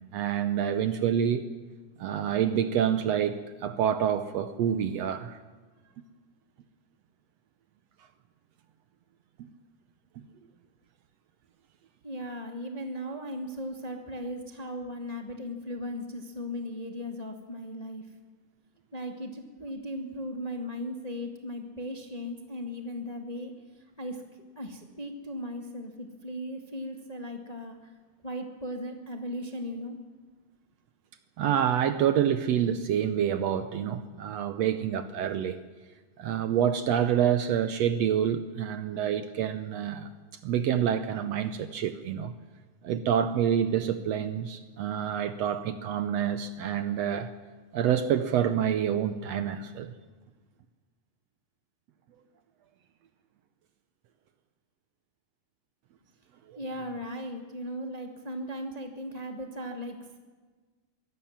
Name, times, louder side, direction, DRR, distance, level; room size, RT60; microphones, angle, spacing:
voice 1, 0.1-1.5 2.0-5.4 31.4-35.6 36.2-40.1 40.4-42.3 42.8-47.3 47.7-49.9, right 9 dB, 70° right, 11 dB, 1.8 m, -27 dB
voice 2, 12.0-18.1 18.9-23.5 24.0-24.2 24.5-27.9 28.2-30.0 56.5-60.2, equal, 15° left, 4 dB, 1.3 m, -37 dB
23.0 x 16.5 x 7.3 m, 1.4 s
omnidirectional pair, 3.5 m